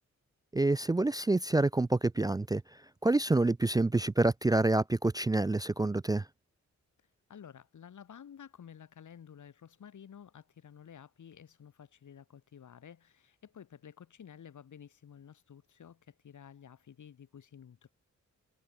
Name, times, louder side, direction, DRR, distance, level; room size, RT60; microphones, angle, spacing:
voice 1, 0.5-2.6 3.0-6.2, right 2 dB, 15° right, 0.4 m, -27 dB
voice 2, 7.3-17.9, left 8 dB, 85° left, 7.9 m, -52 dB
wide cardioid pair, 110°, 29 cm